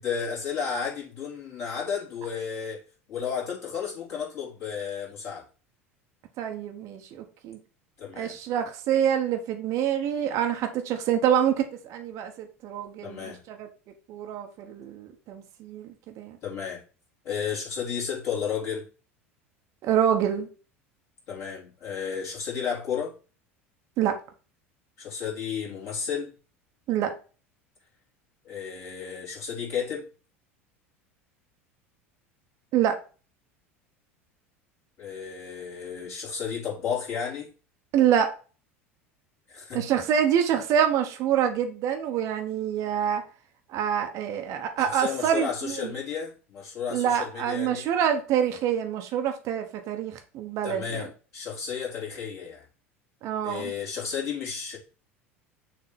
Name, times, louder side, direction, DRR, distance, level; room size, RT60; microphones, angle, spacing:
voice 1, 0.0-2.8 3.1-5.5 8.0-8.4 13.0-13.4 16.4-16.8 17.2-18.9 21.3-23.1 25.0-26.3 28.4-30.1 35.0-37.5 39.5-39.9 44.8-47.9 50.6-52.7 53.4-54.8, left 7 dB, 45° left, 3.6 m, -33 dB
voice 2, 6.4-7.6 8.2-13.7 14.1-16.4 19.8-20.5 24.0-24.2 26.9-27.1 32.7-33.0 37.9-38.3 39.7-43.2 43.7-45.9 46.9-51.1 53.2-53.7, right 9 dB, 45° right, 1.0 m, -26 dB
6.8 x 3.4 x 4.2 m
figure-of-eight pair, 75°, 7 cm